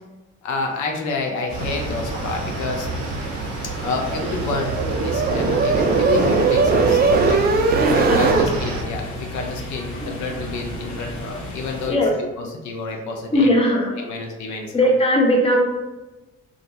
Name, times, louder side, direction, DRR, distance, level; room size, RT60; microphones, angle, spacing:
voice 1, 0.4-2.9 3.8-4.8 5.0-7.4 7.8-12.0 12.4-14.9, left 3 dB, 70° left, 2 dB, 0.6 m, -29 dB
sound 1, 1.5-11.9, equal, 55° left, 1.2 m, -34 dB
sound 2, 1.5-8.8, right 3 dB, 90° right, 0.6 m, -29 dB
sound 3, 3.8-8.5, right 4 dB, 35° right, 0.4 m, -19 dB
voice 2, 7.8-8.5 10.0-10.1 11.9-12.1 13.3-13.9 14.7-15.6, left 1 dB, 20° left, 0 dB, 0.7 m, -19 dB
2.5 x 2.3 x 3.9 m, 1.1 s
cardioid pair, 90°, 30 cm